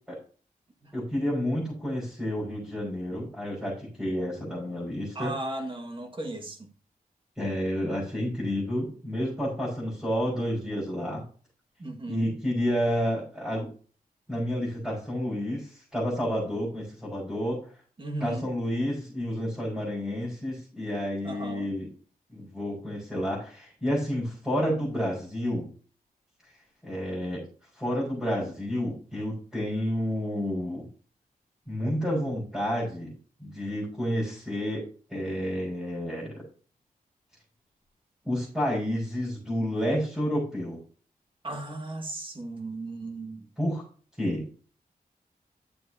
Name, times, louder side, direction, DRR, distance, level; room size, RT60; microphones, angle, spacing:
voice 1, 0.9-5.3 7.4-11.2 12.1-13.7 14.3-17.6 18.2-21.9 22.3-25.7 26.8-27.4 27.8-30.9 31.7-33.1 33.4-34.8 35.1-36.4 38.2-40.8 43.6-43.8 44.2-44.4, equal, 5° right, 5.5 m, -30 dB
voice 2, 5.2-6.7 11.8-12.3 18.0-18.5 21.2-21.7 41.4-43.5, right 2 dB, 35° right, 2.0 m, -36 dB
12.0 x 7.8 x 2.9 m
wide cardioid pair, 135°, 15 cm